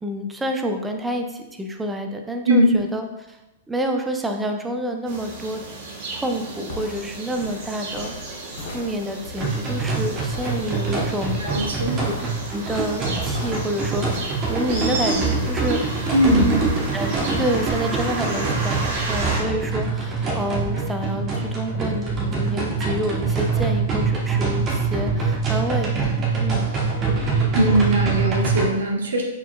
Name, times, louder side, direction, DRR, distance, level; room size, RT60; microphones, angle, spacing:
voice 1, 0.0-3.4 3.7-5.6 6.1-8.1 8.7-11.5 12.0-12.1 12.5-15.8 16.3-16.6 16.9-26.7, equal, 10° right, 4 dB, 0.5 m, -28 dB
sound 1, 5.1-19.4, right 2 dB, 50° right, 1.2 m, -33 dB
sound 2, 6.2-14.9, left 2 dB, 60° left, 0.9 m, -38 dB
sound 3, 9.4-28.6, right 4 dB, 30° right, 1.0 m, -24 dB
voice 2, 11.4-12.0 16.1-16.6 27.5-29.2, equal, 70° right, 1 dB, 0.8 m, -20 dB
4.3 x 4.3 x 2.3 m, 0.97 s
figure-of-eight pair, 105°, 0 cm